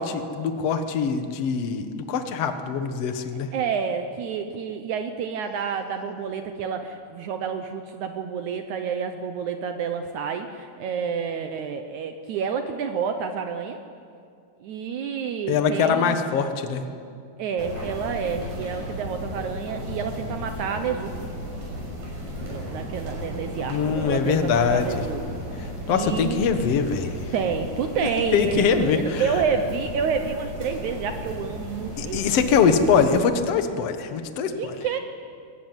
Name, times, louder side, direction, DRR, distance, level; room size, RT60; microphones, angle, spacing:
voice 1, 0.0-3.5 15.5-16.8 23.7-25.0 25.9-27.1 28.3-29.2 32.0-34.7, left 6 dB, 65° left, 7 dB, 1.5 m, -23 dB
voice 2, 3.5-13.8 14.6-16.2 17.4-21.1 22.3-26.4 27.3-32.6 34.6-35.0, right 6 dB, 85° right, 6 dB, 1.6 m, -29 dB
sound 1, 17.6-33.2, equal, 55° right, 7.8 m, -35 dB
23.0 x 19.0 x 9.1 m, 2.3 s
omnidirectional pair, 4.9 m